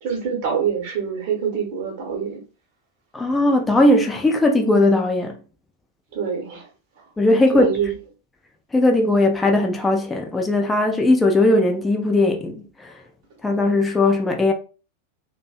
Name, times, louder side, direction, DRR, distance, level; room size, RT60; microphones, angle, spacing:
voice 1, 0.0-2.4 6.1-6.7 7.5-7.9, right 7 dB, 50° right, 0.8 m, -25 dB
voice 2, 3.1-5.4 7.2-7.7 8.7-12.9 13.4-14.5, left 2 dB, 10° left, 0.4 m, -18 dB
2.5 x 2.1 x 2.3 m
figure-of-eight pair, 90°, 0 cm